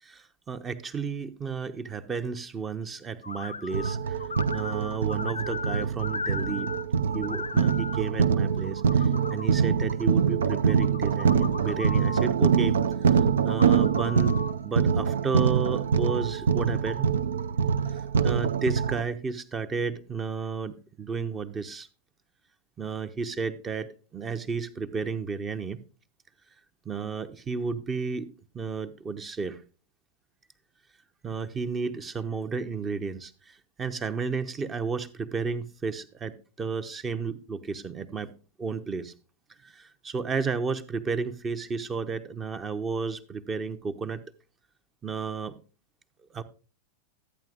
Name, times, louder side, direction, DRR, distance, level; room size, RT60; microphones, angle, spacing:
voice 1, 0.1-4.2 4.5-6.7 7.1-12.7 13.1-14.4 14.6-17.1 17.9-21.9 22.8-25.8 26.8-29.6 31.2-38.3 38.6-39.1 39.6-44.2 45.0-45.6 46.3-46.4, right 5 dB, 20° right, 0.7 m, -32 dB
sound 1, 3.2-3.9 4.2-6.8 7.1-8.0 8.5-9.5 10.4-12.3 13.4-14.5, left 4 dB, 80° left, 0.4 m, -37 dB
sound 2, 3.7-19.0, right 6 dB, 65° right, 0.4 m, -24 dB
13.0 x 8.9 x 2.5 m
figure-of-eight pair, 90°, 0 cm